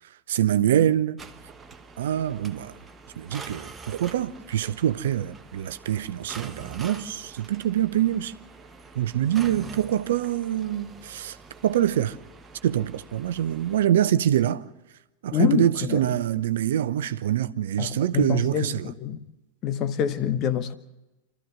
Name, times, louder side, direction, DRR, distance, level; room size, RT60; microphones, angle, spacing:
voice 1, 0.3-1.2 2.0-2.7 3.2-8.3 8.9-11.4 11.6-12.2 12.6-14.6 15.2-18.9, right 11 dB, 60° right, 0.7 m, -25 dB
sound 1, 1.2-13.9, right 4 dB, 15° right, 1.2 m, -45 dB
voice 2, 15.3-16.0 17.8-19.2 19.6-20.7, left 9 dB, 35° left, 1.2 m, -26 dB
27.5 x 14.0 x 7.5 m
figure-of-eight pair, 90°, 0 cm